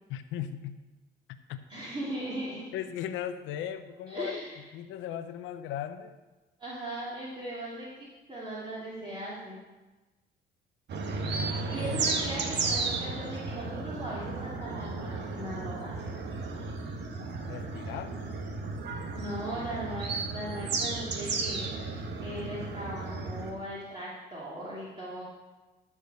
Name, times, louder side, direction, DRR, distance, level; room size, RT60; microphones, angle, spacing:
voice 1, 0.1-0.8 1.5-1.6 2.7-6.2 11.2-12.0 17.5-18.2, left 10 dB, 85° left, 10 dB, 0.8 m, -38 dB
voice 2, 1.7-2.6 4.1-4.5 6.6-9.6 11.7-16.1 19.1-25.2, right 1 dB, 25° right, -7 dB, 2.9 m, -38 dB
sound 1, 10.9-23.5, right 3 dB, 65° right, 1.6 m, -34 dB
12.5 x 4.9 x 6.8 m, 1.2 s
cardioid pair, 90°, 20 cm